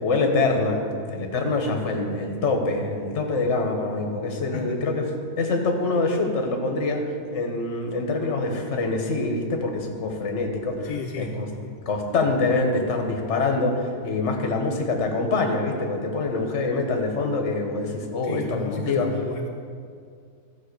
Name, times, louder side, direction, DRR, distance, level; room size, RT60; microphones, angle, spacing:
voice 1, 0.0-5.0 5.4-7.0 7.3-10.9 11.2-11.5 11.9-19.1, left 3 dB, 45° left, 3 dB, 1.4 m, -25 dB
voice 2, 4.5-5.0 10.8-11.3 11.6-11.8 18.2-19.5, left 4 dB, 75° left, 0 dB, 1.3 m, -33 dB
13.0 x 5.2 x 6.7 m, 2.2 s
omnidirectional pair, 1.8 m